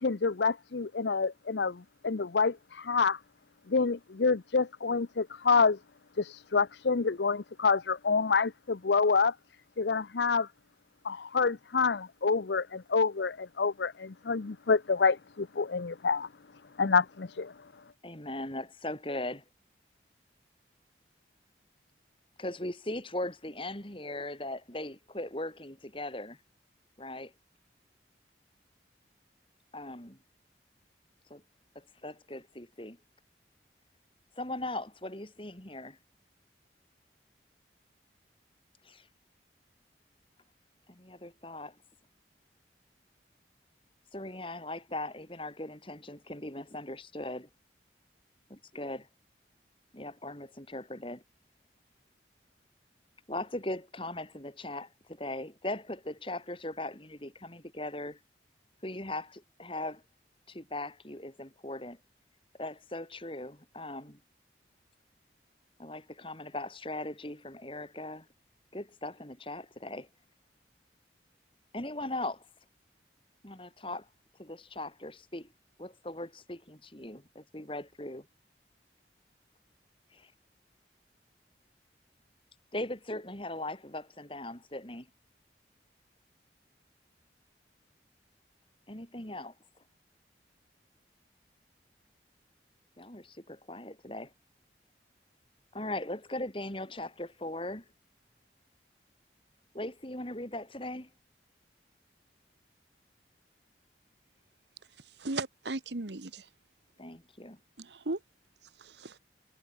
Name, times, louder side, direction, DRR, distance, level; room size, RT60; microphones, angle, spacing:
voice 1, 0.0-3.2 3.7-5.8 6.2-9.3 9.8-10.5 11.0-16.3 16.8-17.5, left 4 dB, 75° left, 0.7 m, -27 dB
voice 2, 18.0-19.4 22.4-26.4 27.0-27.3 29.7-30.2 31.3-31.4 31.8-33.0 34.4-36.0 38.8-39.1 40.9-41.8 44.1-47.5 48.5-49.1 49.9-51.2 53.3-58.2 58.8-60.0 60.5-62.0 62.6-64.2 65.8-68.3 68.7-70.1 71.7-72.5 73.4-74.1 74.4-75.5 75.8-78.3 80.1-80.3 82.7-85.1 88.9-89.5 93.0-94.3 95.7-97.8 99.7-101.1 107.0-107.6, left 1 dB, 30° left, 3.7 m, -39 dB
voice 3, 105.2-106.5 107.8-108.2 108.8-109.2, right 2 dB, 75° right, 1.4 m, -36 dB
head